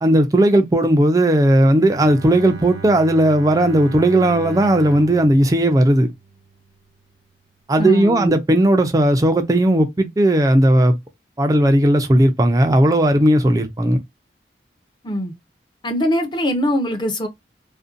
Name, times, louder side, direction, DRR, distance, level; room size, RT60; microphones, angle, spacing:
voice 1, 0.0-6.1 7.7-11.0 11.4-14.0, right 1 dB, 20° right, 0.3 m, -16 dB
Bowed string instrument, 1.8-6.8, right 4 dB, 80° right, 0.8 m, -36 dB
voice 2, 7.8-8.3 15.0-15.3 15.8-17.3, equal, 25° left, 0.6 m, -22 dB
2.5 x 2.1 x 2.4 m
head